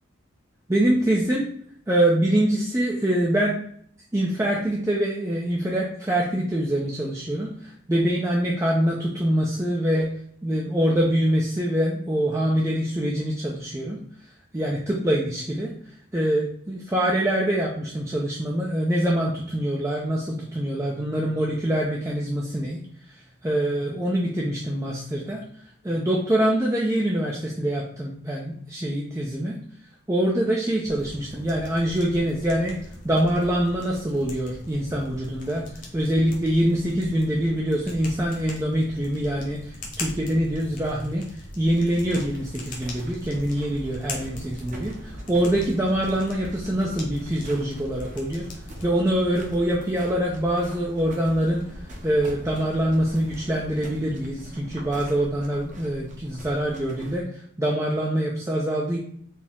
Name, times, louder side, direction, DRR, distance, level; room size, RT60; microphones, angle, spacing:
voice 1, 0.7-1.5 1.9-3.6 4.1-10.1 10.4-14.0 14.5-22.8 23.1-23.2 23.4-25.4 25.8-29.6 30.1-32.8 33.0-48.5 48.8-59.0, right 1 dB, 15° right, -3 dB, 0.5 m, -24 dB
sound 1, 30.8-48.9, left 1 dB, 40° left, 1.1 m, -41 dB
sound 2, 42.0-57.2, equal, 40° right, 0.9 m, -43 dB
sound 3, 43.2-53.8, equal, 60° right, 1.5 m, -44 dB
4.2 x 2.8 x 3.6 m, 0.62 s
head